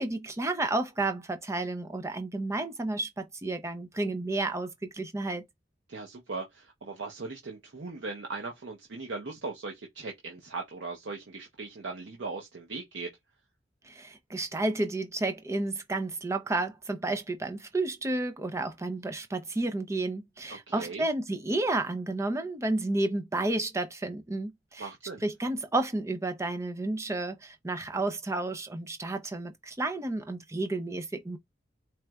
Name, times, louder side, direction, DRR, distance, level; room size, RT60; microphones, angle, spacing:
voice 1, 0.0-5.4 13.8-24.9 25.2-31.4, right 2 dB, 15° right, 0.5 m, -31 dB
voice 2, 5.9-13.1 20.5-21.1 24.8-25.2, right 3 dB, 90° right, 0.8 m, -39 dB
4.4 x 3.1 x 2.3 m
head